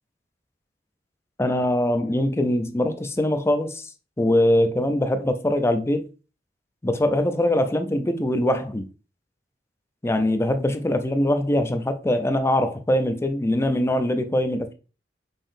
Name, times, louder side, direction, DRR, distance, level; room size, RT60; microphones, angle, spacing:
voice 1, 1.4-3.9 4.2-6.1 6.8-8.9 10.0-14.7, left 1 dB, 15° left, 0.5 m, -22 dB
5.3 x 3.7 x 2.6 m
head